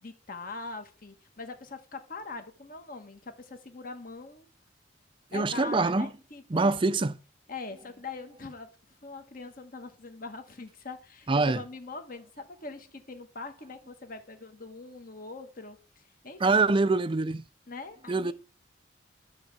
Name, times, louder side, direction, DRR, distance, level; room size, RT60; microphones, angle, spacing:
voice 1, 0.0-4.5 5.3-7.0 7.5-16.7 17.7-18.3, left 3 dB, 50° left, 1.6 m, -42 dB
voice 2, 5.3-6.1 6.5-7.1 11.3-11.6 16.4-17.4 18.1-18.3, right 3 dB, 25° right, 0.5 m, -24 dB
13.0 x 4.6 x 6.9 m
head